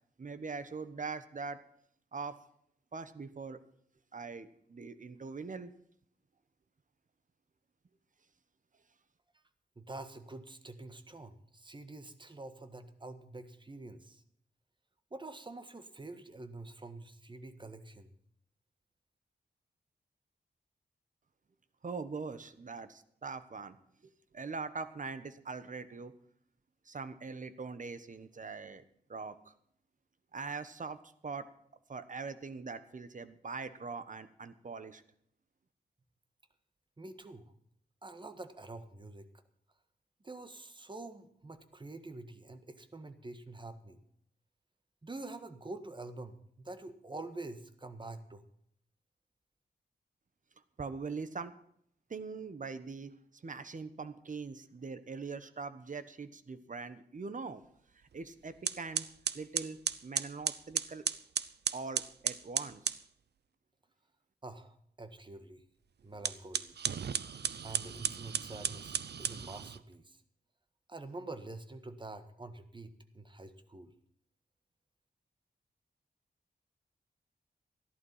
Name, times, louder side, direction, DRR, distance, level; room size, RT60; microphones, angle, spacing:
voice 1, 0.2-1.6 2.1-2.4 2.9-3.6 4.1-5.7 21.8-23.8 24.0-26.1 26.9-28.8 29.1-29.4 30.3-31.5 31.9-35.0 50.8-51.5 52.1-53.1 53.4-57.6 58.1-59.1 59.3-61.0 61.7-63.0, right 4 dB, 50° right, 13 dB, 1.2 m, -42 dB
voice 2, 9.8-14.2 15.1-18.1 37.0-37.5 38.0-39.3 40.2-44.0 45.0-48.4 64.4-65.6 66.0-66.8 67.6-70.2 70.9-73.9, right 2 dB, 25° right, 10 dB, 1.5 m, -47 dB
sound 1, 58.1-58.3 58.6-63.0 66.1-69.8, right 7 dB, 75° right, 0.7 m, -35 dB
14.5 x 11.5 x 5.7 m, 0.68 s
wide cardioid pair, 90°, 17 cm